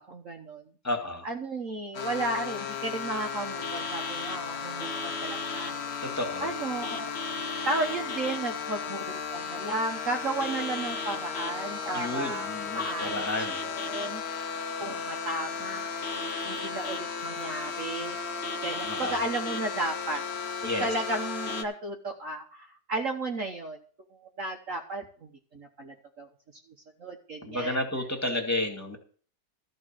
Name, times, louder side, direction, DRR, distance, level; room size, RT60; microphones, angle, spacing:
voice 1, 0.1-0.6 1.2-5.9 6.4-7.1 7.7-12.5 12.7-14.2 14.8-18.2 18.6-20.2 20.8-23.8 24.1-26.3 27.0-27.8, right 2 dB, 50° right, 3 dB, 1.4 m, -34 dB
voice 2, 0.8-1.3 6.0-6.5 11.9-13.6 18.9-19.2 20.6-20.9 27.5-29.0, left 1 dB, 10° left, 3 dB, 2.3 m, -31 dB
sound 1, 1.9-21.6, left 5 dB, 40° left, 1.3 m, -34 dB
14.0 x 5.4 x 7.6 m, 0.44 s
omnidirectional pair, 2.0 m